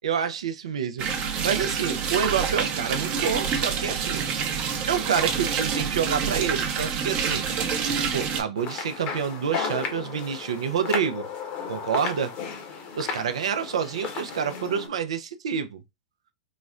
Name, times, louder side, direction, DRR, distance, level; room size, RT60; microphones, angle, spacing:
voice 1, 0.0-1.1 1.4-4.2 4.9-7.4 8.1-11.3 11.7-12.3 12.9-15.8, right 7 dB, 85° right, 0.5 m, -28 dB
sound 1, 1.0-8.4, right 6 dB, 40° right, 0.7 m, -27 dB
sound 2, 8.6-14.9, left 6 dB, 50° left, 0.9 m, -34 dB
4.0 x 2.1 x 2.4 m
hypercardioid pair, 110°, 3 cm